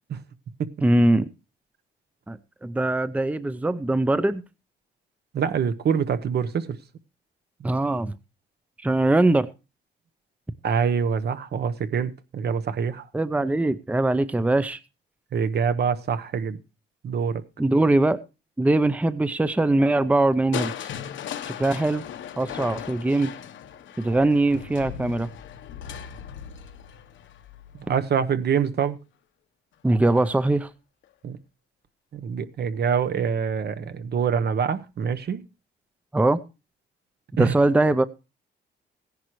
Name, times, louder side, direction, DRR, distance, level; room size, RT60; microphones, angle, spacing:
voice 1, 0.8-1.3 2.3-4.4 7.6-8.1 8.8-9.5 13.1-14.8 17.6-18.2 18.6-20.9 21.6-22.0 22.4-23.3 24.0-25.3 29.8-30.7 36.1-36.4 37.4-38.0, right 2 dB, 5° right, 0.6 m, -21 dB
voice 2, 5.3-6.7 10.6-13.0 15.3-16.6 17.0-17.4 27.9-29.0 31.2-31.4 32.1-35.4 37.4-37.5, right 7 dB, 55° right, 1.0 m, -25 dB
Crushing, 20.5-28.5 30.0-30.5 31.0-31.1, left 9 dB, 70° left, 1.1 m, -38 dB
16.5 x 10.5 x 3.1 m
cardioid pair, 90°, 20 cm